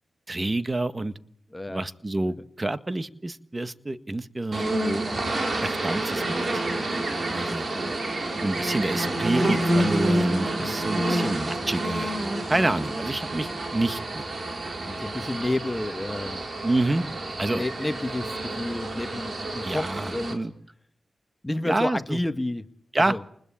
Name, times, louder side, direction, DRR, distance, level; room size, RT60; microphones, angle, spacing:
voice 1, 0.3-1.1 1.7-5.1 5.6-6.6 7.3-7.7 8.4-12.1 12.5-14.2 16.6-17.0 17.4-17.6 19.6-20.5 21.7-22.2 22.9-23.2, right 2 dB, 30° right, 12 dB, 1.8 m, -28 dB
voice 2, 1.5-1.8 7.7-7.9 10.6-10.7 12.6-12.7 14.8-16.4 17.5-20.4 21.4-22.6 23.0-23.2, left 1 dB, 20° left, 10 dB, 1.7 m, -30 dB
sound 1, 4.5-20.3, right 1 dB, 55° right, 5.0 m, -28 dB
29.0 x 21.0 x 8.7 m, 0.66 s
cardioid pair, 40°, 0 cm